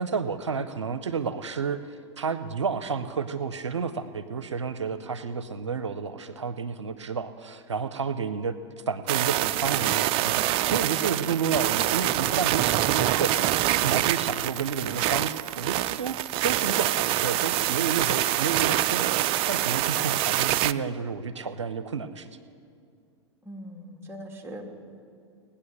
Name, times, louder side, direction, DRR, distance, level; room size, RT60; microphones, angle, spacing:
voice 1, 0.0-1.8 2.2-8.6 8.9-22.3, right 6 dB, 85° right, 12 dB, 0.6 m, -31 dB
sound 1, 9.1-20.7, right 14 dB, 40° right, 0.4 m, -25 dB
voice 2, 23.4-24.6, equal, 15° right, 0 dB, 2.2 m, -40 dB
19.0 x 10.0 x 6.5 m, 2.4 s
hypercardioid pair, 100°, 15 cm